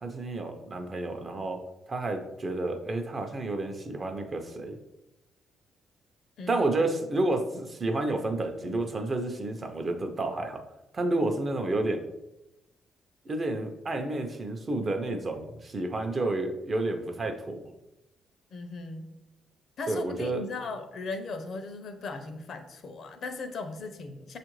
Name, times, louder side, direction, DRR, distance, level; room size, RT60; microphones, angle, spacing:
voice 1, 0.0-1.6 1.9-4.8 6.5-10.6 10.9-12.0 13.3-17.6 19.9-20.4, right 2 dB, 35° right, 5 dB, 0.6 m, -30 dB
voice 2, 18.5-19.2 19.8-24.4, left 3 dB, 60° left, 7 dB, 0.5 m, -38 dB
6.2 x 2.5 x 3.0 m, 0.94 s
cardioid pair, 90°, 0 cm